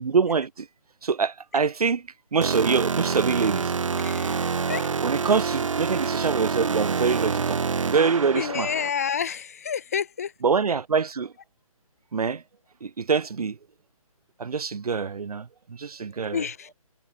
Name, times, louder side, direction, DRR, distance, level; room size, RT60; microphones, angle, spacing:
voice 1, 0.0-0.7 1.0-3.7 5.0-8.7 10.4-11.3 12.1-12.4 12.8-13.6 14.4-16.4, right 5 dB, 90° right, 1.0 m, -25 dB
sound 1, 2.4-8.9, right 5 dB, 60° right, 1.4 m, -27 dB
voice 2, 4.0-4.9 8.3-10.3 16.3-16.7, left 7 dB, 25° left, 1.0 m, -29 dB
hypercardioid pair, 175°, 19 cm